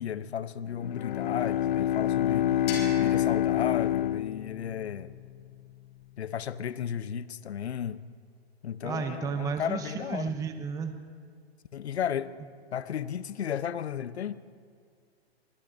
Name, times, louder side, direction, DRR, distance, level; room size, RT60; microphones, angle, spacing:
voice 1, 0.0-2.5 3.0-5.1 6.2-8.0 8.6-10.3 11.7-12.3 12.7-14.4, left 8 dB, 80° left, 16 dB, 0.8 m, -34 dB
Bowed string instrument, 0.7-5.1, left 11 dB, 50° left, 0.4 m, -27 dB
sound 1, 2.7-5.5, left 4 dB, 35° left, 5.2 m, -43 dB
voice 2, 8.8-10.9, right 6 dB, 10° right, 7 dB, 0.7 m, -33 dB
24.0 x 22.0 x 2.6 m, 2.1 s
hypercardioid pair, 125°, 32 cm